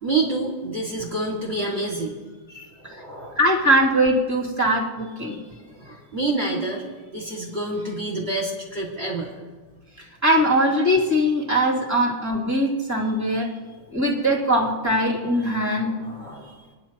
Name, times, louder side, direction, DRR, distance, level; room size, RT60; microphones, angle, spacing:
voice 1, 0.0-2.2 2.5-3.4 5.5-6.8 7.1-9.3 13.3-13.5 15.0-15.1 15.8-16.6, right 2 dB, 30° right, -3 dB, 2.4 m, -28 dB
voice 2, 3.4-5.4 10.0-13.5 13.9-15.9, equal, 10° right, -4 dB, 2.8 m, -21 dB
27.5 x 10.5 x 3.0 m, 1.3 s
omnidirectional pair, 2.3 m